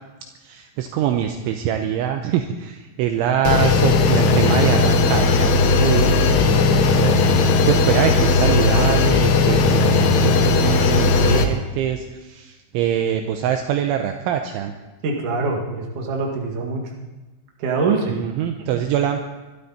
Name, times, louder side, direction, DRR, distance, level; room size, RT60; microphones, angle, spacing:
voice 1, 0.4-14.7 18.1-19.3, right 9 dB, 80° right, 5 dB, 3.0 m, -24 dB
sound 1, 3.5-11.5, left 3 dB, 75° left, 3.5 m, -17 dB
voice 2, 15.0-16.8 17.6-18.2, right 4 dB, 50° right, 0 dB, 2.9 m, -23 dB
25.0 x 12.5 x 4.3 m, 1.1 s
omnidirectional pair, 6.0 m